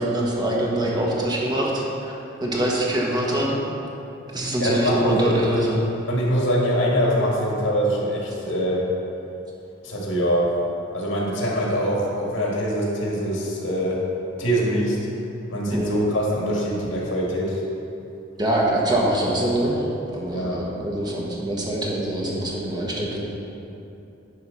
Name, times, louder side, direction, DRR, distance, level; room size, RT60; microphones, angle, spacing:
voice 1, 0.0-2.1 2.4-3.6 4.3-5.8 15.7-16.0 18.4-19.8 20.1-23.2, right 1 dB, 20° right, -4 dB, 1.3 m, -24 dB
voice 2, 4.6-5.6 6.1-8.9 9.8-10.5 10.9-14.0 14.4-15.0 15.5-17.6 20.3-20.7, equal, 70° left, -3 dB, 1.9 m, -24 dB
10.5 x 3.8 x 5.6 m, 2.8 s
head